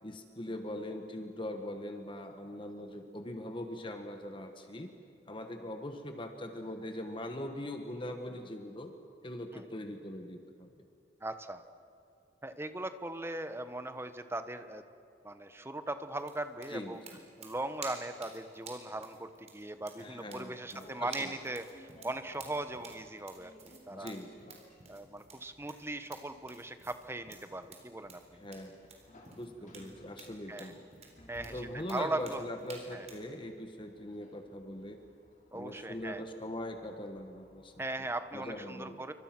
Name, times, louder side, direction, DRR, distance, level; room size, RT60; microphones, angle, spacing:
voice 1, 0.0-4.9 5.2-8.9 9.2-10.9 16.7-17.2 20.0-21.3 23.9-24.5 28.3-28.9 29.3-30.8 31.5-35.0 35.5-38.1 38.3-39.0, left 1 dB, 30° left, 5 dB, 1.5 m, -42 dB
voice 2, 11.2-11.6 12.4-14.8 15.2-17.0 17.4-24.1 24.9-28.4 30.5-30.7 31.3-32.4 32.9-33.1 35.5-36.2 37.8-39.1, right 2 dB, 15° right, 10 dB, 1.2 m, -39 dB
sound 1, 16.2-33.3, right 4 dB, 40° right, 4.0 m, -52 dB
sound 2, 20.6-38.6, left 1 dB, 45° left, 4.1 m, -60 dB
28.0 x 25.0 x 6.1 m, 2.6 s
head